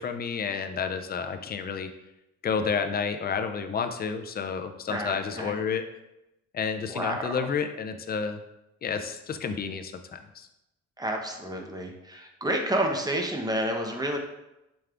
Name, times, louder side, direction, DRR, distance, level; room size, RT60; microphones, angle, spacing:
voice 1, 0.0-1.9 2.4-5.9 6.5-8.4 8.8-10.5, left 6 dB, 30° left, 7 dB, 0.4 m, -30 dB
voice 2, 4.9-5.6 6.9-7.5 11.0-14.2, right 1 dB, 15° right, 2 dB, 0.6 m, -30 dB
5.1 x 2.3 x 3.3 m, 0.92 s
cardioid pair, 90°, 30 cm